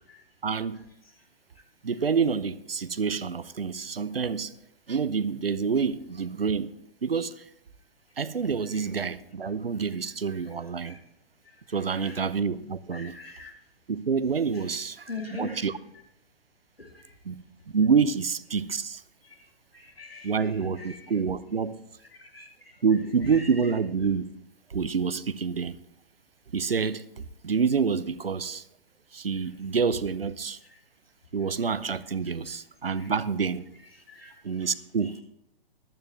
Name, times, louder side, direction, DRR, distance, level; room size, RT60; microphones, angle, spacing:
voice 1, 0.4-0.8 1.8-4.5 4.9-6.7 7.0-7.4 8.2-11.0 11.7-13.2 13.9-15.8 17.2-19.0 20.2-21.8 22.8-24.3 24.7-25.8 26.5-28.6 29.1-30.6 31.3-33.7 34.4-35.2, right 5 dB, 80° right, 0.7 m, -27 dB
voice 2, 11.9-12.2 12.9-13.5 15.1-15.6 16.8-16.9 19.2-19.4 19.7-20.3 20.8-21.0 22.2-22.5 34.1-34.4, left 4 dB, 80° left, 2.4 m, -41 dB
14.5 x 12.0 x 3.0 m
figure-of-eight pair, 120°, 29 cm